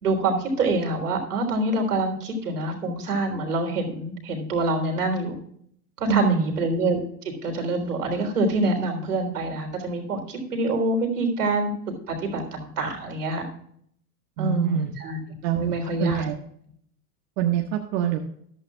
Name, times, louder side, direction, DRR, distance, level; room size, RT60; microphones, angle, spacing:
voice 1, 0.0-5.3 6.0-7.0 7.4-11.7 12.1-13.5 14.4-15.2 15.6-16.2, right 2 dB, 90° right, 3 dB, 3.9 m, -26 dB
voice 2, 6.1-6.5 14.4-14.9 15.4-15.7 16.0-16.3 17.4-18.2, right 10 dB, 60° right, 2 dB, 1.6 m, -24 dB
14.0 x 12.0 x 2.4 m, 0.66 s
hypercardioid pair, 100°, 45 cm